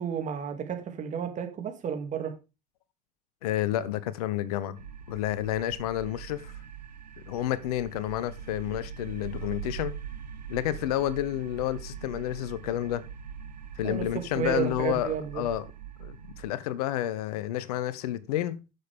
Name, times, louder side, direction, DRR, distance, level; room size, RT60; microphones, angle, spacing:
voice 1, 0.0-2.3 13.8-14.0 14.3-15.4, right 8 dB, 35° right, 2.5 m, -32 dB
voice 2, 3.4-4.8 5.1-6.5 7.2-9.9 10.5-13.1 13.8-15.7 16.0-18.6, left 13 dB, 65° left, 0.8 m, -30 dB
sound 1, 4.8-16.5, right 8 dB, 85° right, 1.0 m, -42 dB
11.5 x 6.9 x 3.6 m
figure-of-eight pair, 75°, 21 cm